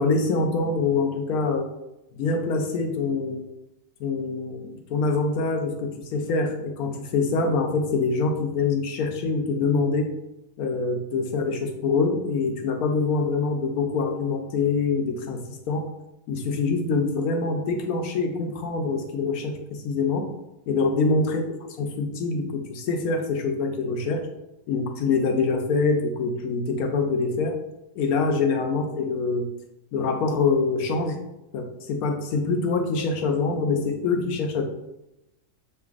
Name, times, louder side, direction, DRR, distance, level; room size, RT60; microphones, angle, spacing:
voice 1, 0.0-1.7 2.1-3.4 4.0-10.1 10.6-15.9 16.3-20.3 20.7-21.4 21.8-24.3 24.7-27.6 27.9-29.5 29.9-31.2 31.5-34.7, left 4 dB, 80° left, 3 dB, 1.1 m, -25 dB
6.6 x 2.5 x 2.4 m, 0.92 s
omnidirectional pair, 1.6 m